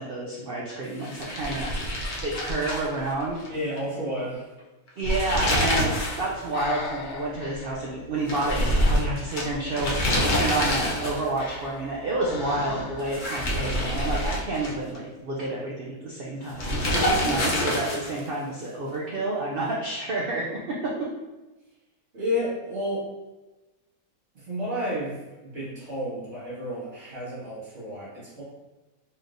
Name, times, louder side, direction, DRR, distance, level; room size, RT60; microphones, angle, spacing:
voice 1, 0.0-1.7 2.2-3.4 5.0-5.9 6.2-20.8, right 2 dB, 75° right, -3 dB, 0.5 m, -29 dB
sound 1, 1.0-3.5 3.8-3.9 4.9-6.3 6.6-6.7 8.3-11.4 13.0-15.0 16.6-18.3, equal, 50° left, 0.6 m, -26 dB
voice 2, 3.5-4.5 8.7-9.0 22.1-23.0 24.4-28.4, equal, 50° right, -9 dB, 1.5 m, -31 dB
Breathing, 5.4-13.3, left 3 dB, 70° left, 0.9 m, -39 dB
4.3 x 3.2 x 2.5 m, 1.1 s
omnidirectional pair, 1.7 m